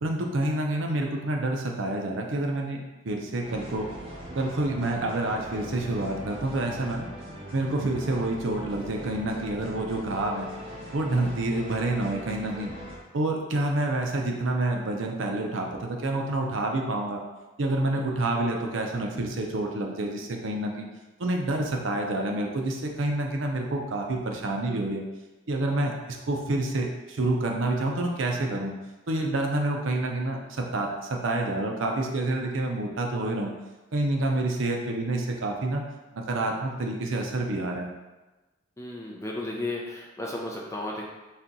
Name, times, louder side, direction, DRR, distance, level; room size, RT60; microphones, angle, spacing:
voice 1, 0.0-3.9 4.3-7.1 7.5-10.5 10.9-12.7 13.1-17.2 17.6-20.9 21.2-25.0 25.5-28.7 29.1-33.5 33.9-35.8 36.1-37.9, right 2 dB, 75° right, 1 dB, 0.6 m, -28 dB
sound 1, 3.4-13.0, equal, 30° right, 0.9 m, -41 dB
voice 2, 38.8-41.0, left 2 dB, 15° left, -2 dB, 0.5 m, -34 dB
4.3 x 2.3 x 3.8 m, 1.1 s
head